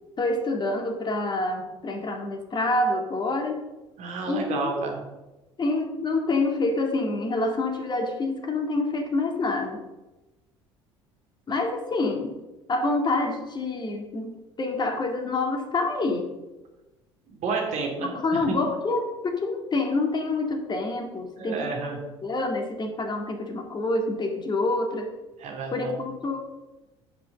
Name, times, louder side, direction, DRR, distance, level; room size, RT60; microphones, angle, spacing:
voice 1, 0.2-3.6 4.3-4.7 5.6-9.8 11.5-12.3 12.7-16.3 18.0-21.7 22.2-25.1 25.7-26.4, left 2 dB, 30° left, 4 dB, 2.2 m, -27 dB
voice 2, 4.0-5.0 17.3-18.1 18.5-18.6 21.4-22.0 25.4-25.9, right 4 dB, 50° right, 1 dB, 2.9 m, -30 dB
10.0 x 6.0 x 6.7 m, 1.0 s
figure-of-eight pair, 60°, 15 cm